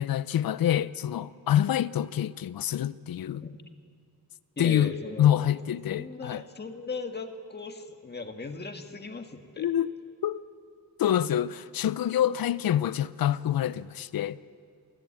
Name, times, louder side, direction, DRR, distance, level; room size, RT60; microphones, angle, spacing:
voice 1, 0.0-3.4 4.6-4.9 5.2-6.4 9.6-9.9 10.2-10.4 11.0-14.4, left 11 dB, 65° left, 0.7 m, -26 dB
voice 2, 4.6-5.5 5.9-9.7, left 4 dB, 25° left, 1.7 m, -37 dB
28.0 x 14.5 x 8.7 m
wide cardioid pair, 125°, 38 cm